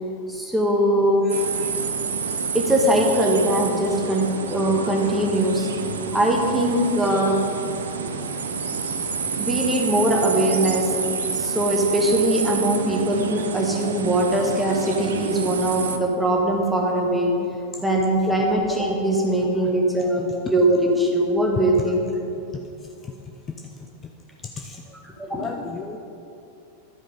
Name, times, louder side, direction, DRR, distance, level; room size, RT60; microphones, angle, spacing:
voice 1, 0.3-1.2 2.5-5.7 6.1-7.4 9.4-10.9 11.3-17.3 17.8-22.0 25.0-25.4, right 1 dB, 5° right, -1 dB, 1.5 m, -21 dB
sound 1, 1.3-16.0, right 5 dB, 70° right, 0.5 m, -28 dB
voice 2, 24.6-24.9 25.3-26.0, left 4 dB, 25° left, 2 dB, 0.5 m, -35 dB
12.0 x 5.1 x 5.2 m, 2.7 s
figure-of-eight pair, 90°, 0 cm